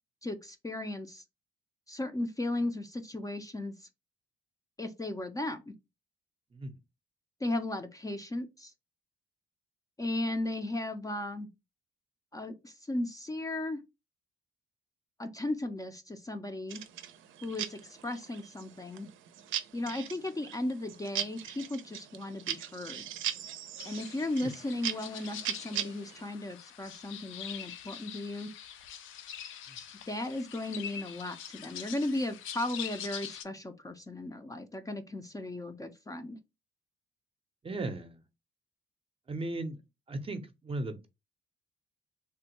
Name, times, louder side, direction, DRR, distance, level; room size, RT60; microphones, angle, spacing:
voice 1, 0.2-1.2 1.9-3.9 4.8-5.7 7.4-8.7 10.0-11.5 12.3-13.8 15.2-16.8 17.4-19.1 19.7-23.0 23.8-28.5 30.1-36.4, left 1 dB, 15° left, 0.4 m, -36 dB
sound 1, 16.7-26.3, right 10 dB, 85° right, 0.5 m, -40 dB
sound 2, 23.8-33.4, left 9 dB, 80° left, 0.5 m, -44 dB
voice 2, 37.6-38.2 39.3-39.8 40.1-41.1, right 2 dB, 30° right, 0.6 m, -37 dB
3.4 x 2.1 x 2.9 m
cardioid pair, 90°, 20 cm